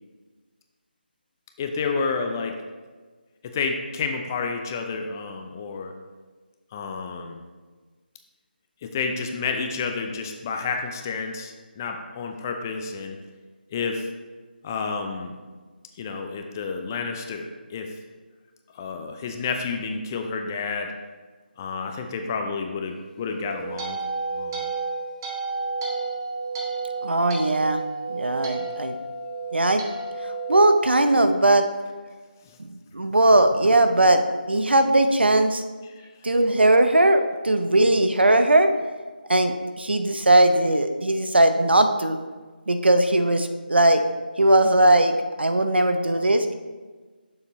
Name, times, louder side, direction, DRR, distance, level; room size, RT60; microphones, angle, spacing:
voice 1, 1.6-2.6 3.4-5.9 6.7-7.4 8.8-13.2 13.7-14.1 14.6-15.3 16.0-17.9 18.7-20.9 21.6-24.0 24.3-24.7 32.4-32.6 35.8-36.1, left 4 dB, 20° left, 4 dB, 0.4 m, -30 dB
sound 1, 23.3-31.6, right 3 dB, 20° right, 0.8 m, -32 dB
voice 2, 27.0-27.8 28.1-28.9 29.5-29.8 30.5-31.7 32.6-34.2 34.5-35.6 36.2-38.7 39.3-42.2 42.7-44.0 44.4-45.1 45.4-46.5, right 1 dB, 85° right, 7 dB, 0.7 m, -19 dB
6.9 x 6.7 x 3.1 m, 1.4 s
figure-of-eight pair, 160°, 6 cm